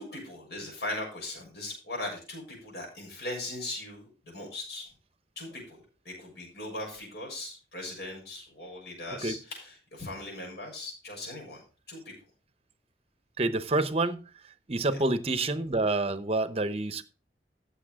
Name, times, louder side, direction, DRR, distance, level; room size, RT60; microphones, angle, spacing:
voice 1, 0.0-4.9 5.4-11.6 11.9-12.1, left 2 dB, 65° left, 6.9 m, -39 dB
voice 2, 13.4-14.2 14.7-17.0, right 2 dB, 35° right, 0.8 m, -27 dB
15.0 x 7.1 x 3.6 m
head